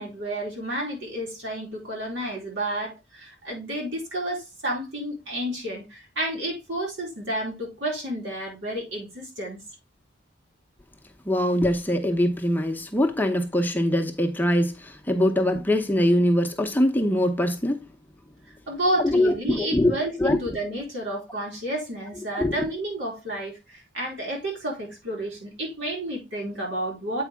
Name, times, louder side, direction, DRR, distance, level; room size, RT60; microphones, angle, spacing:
voice 1, 0.0-9.6 18.7-27.2, right 1 dB, 85° right, 4.3 m, -31 dB
voice 2, 11.3-17.8 19.0-20.4 22.3-22.6, left 1 dB, 10° left, 0.8 m, -23 dB
8.4 x 4.8 x 3.5 m
head